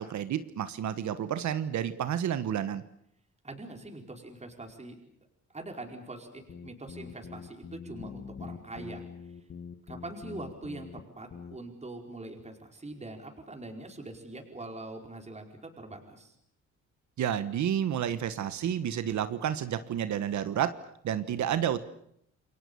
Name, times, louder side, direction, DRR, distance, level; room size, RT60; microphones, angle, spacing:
voice 1, 0.0-2.8 17.2-20.8 21.0-21.8, right 9 dB, 70° right, 12 dB, 1.4 m, -30 dB
voice 2, 3.4-5.0 5.5-9.1 9.4-9.5 9.9-16.4, right 2 dB, 20° right, 2 dB, 4.9 m, -43 dB
sound 1, 6.4-11.0 11.3-11.6, left 6 dB, 50° left, 2.0 m, -44 dB
29.0 x 22.5 x 7.0 m, 0.73 s
cardioid pair, 90°, 30 cm